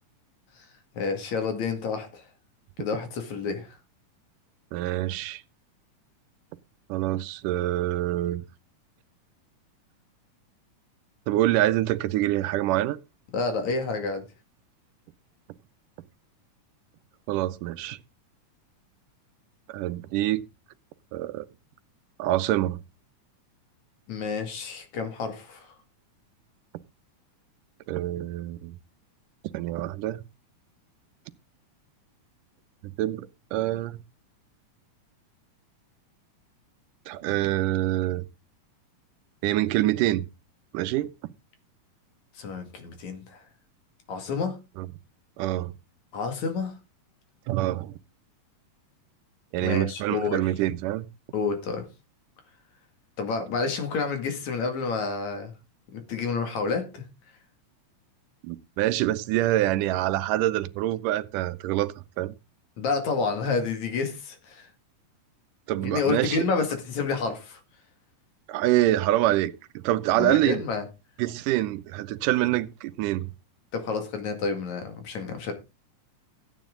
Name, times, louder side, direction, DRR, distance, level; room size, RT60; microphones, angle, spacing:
voice 1, 0.9-2.2 2.8-3.7 13.3-14.2 24.1-25.7 42.3-43.4 44.1-44.6 46.1-46.7 49.6-50.5 51.3-51.8 53.2-55.5 55.9-57.0 62.8-64.7 65.8-67.6 70.2-70.8 73.7-75.5, left 4 dB, 65° left, 3.3 m, -29 dB
voice 2, 4.7-5.4 6.9-8.5 11.3-13.0 17.3-18.0 19.7-20.4 21.1-21.5 22.2-22.8 27.9-28.8 29.5-30.2 32.8-34.0 37.1-38.2 39.4-40.3 40.7-41.1 44.8-44.9 45.4-45.7 47.5-48.0 49.5-51.1 58.4-62.3 65.7-66.5 68.5-70.6 71.2-73.3, right 15 dB, 90° right, 2.3 m, -26 dB
14.5 x 9.3 x 3.8 m
omnidirectional pair, 3.6 m